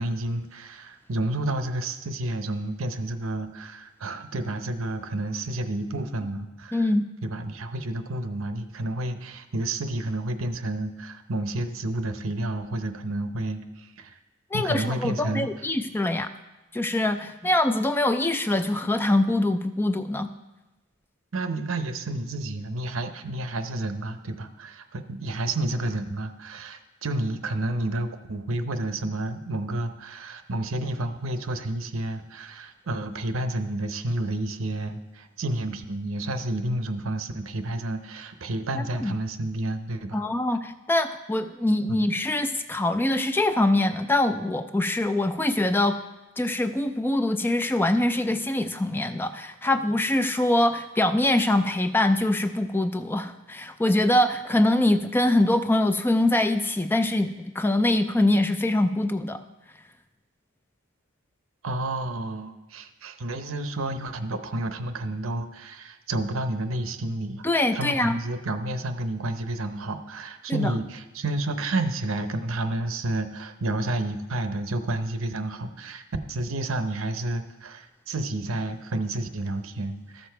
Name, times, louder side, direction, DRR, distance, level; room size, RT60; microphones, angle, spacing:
voice 1, 0.0-6.9 7.2-14.2 14.5-15.5 21.3-40.2 41.9-42.1 61.6-67.4 67.7-76.0 76.3-80.3, right 2 dB, 75° right, 9 dB, 0.7 m, -30 dB
voice 2, 6.7-7.0 14.5-16.3 16.7-20.3 38.7-39.1 40.1-46.0 46.4-59.4 67.4-68.2 70.5-70.7, left 1 dB, 10° left, 9 dB, 0.3 m, -24 dB
13.5 x 6.8 x 4.5 m, 1.1 s
head